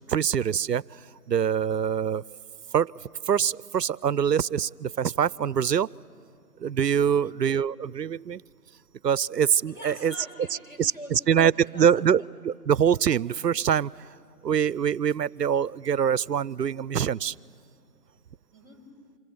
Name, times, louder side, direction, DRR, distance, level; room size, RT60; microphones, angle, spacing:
voice 1, 0.1-0.8 1.3-2.2 2.7-2.9 3.3-5.9 6.6-8.4 9.0-10.1 10.8-13.9 14.4-17.3, right 8 dB, 80° right, 23 dB, 0.6 m, -24 dB
voice 2, 7.1-7.4 9.7-12.1 18.5-18.9, equal, 30° left, -2 dB, 5.2 m, -45 dB
25.5 x 24.0 x 9.0 m, 2.2 s
figure-of-eight pair, 175°, 48 cm